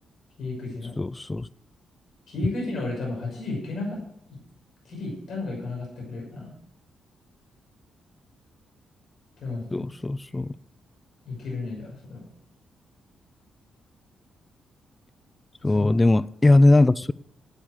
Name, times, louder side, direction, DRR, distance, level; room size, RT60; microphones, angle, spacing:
voice 1, 0.4-1.0 2.3-4.0 4.3-4.4 4.8-6.5 9.4-9.9 11.2-12.2 15.6-16.0, left 2 dB, 60° left, 6.1 m, -33 dB
voice 2, 1.0-1.5 9.7-10.6 15.6-17.1, left 2 dB, 25° left, 0.5 m, -20 dB
11.5 x 9.2 x 6.5 m
hypercardioid pair, 40°, 0 cm